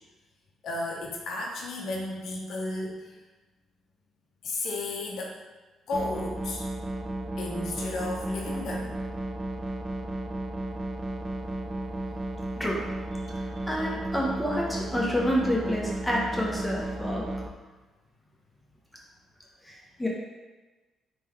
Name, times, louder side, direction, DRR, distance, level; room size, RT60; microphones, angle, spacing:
voice 1, 0.6-3.2 4.4-5.4 5.9-6.7 7.4-8.9, left 2 dB, 65° left, -1 dB, 0.5 m, -33 dB
sound 1, 5.9-17.5, right 1 dB, 35° right, 0.3 m, -34 dB
voice 2, 13.1-17.3 19.7-20.1, equal, 10° left, -3 dB, 0.6 m, -29 dB
3.2 x 2.2 x 3.3 m, 1.2 s
cardioid pair, 90°, 0 cm